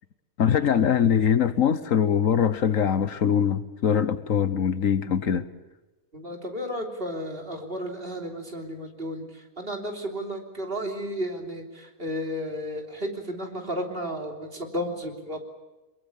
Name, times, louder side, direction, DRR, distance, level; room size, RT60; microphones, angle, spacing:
voice 1, 0.4-5.5, left 8 dB, 65° left, 1.4 m, -22 dB
voice 2, 6.1-15.4, equal, 40° right, 3.5 m, -33 dB
23.0 x 22.0 x 8.4 m
omnidirectional pair, 1.5 m